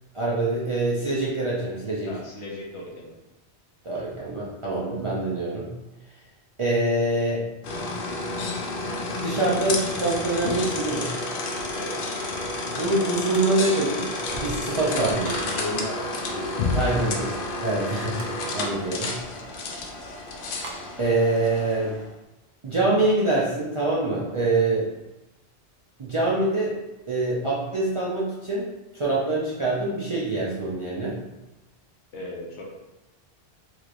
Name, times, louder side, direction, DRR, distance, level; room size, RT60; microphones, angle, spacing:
voice 1, 0.1-2.1 3.8-5.7 6.6-7.4 9.2-11.1 12.7-15.4 16.7-17.3 17.6-19.2 21.0-22.0 22.6-24.9 26.0-26.8 27.1-28.7 28.9-31.2, right 2 dB, 40° right, -6 dB, 0.4 m, -25 dB
voice 2, 2.1-3.1 11.7-12.0 14.8-15.1 15.4-16.0 16.2-16.8 32.1-32.6, left 2 dB, 85° left, -2 dB, 1.1 m, -36 dB
sound 1, 7.6-22.1, left 2 dB, 60° left, 0.7 m, -30 dB
sound 2, 13.3-13.9 14.2-15.5 18.1-18.4 20.6-20.9, right 2 dB, 70° right, 0.8 m, -40 dB
3.2 x 3.1 x 2.4 m, 1.0 s
omnidirectional pair, 1.1 m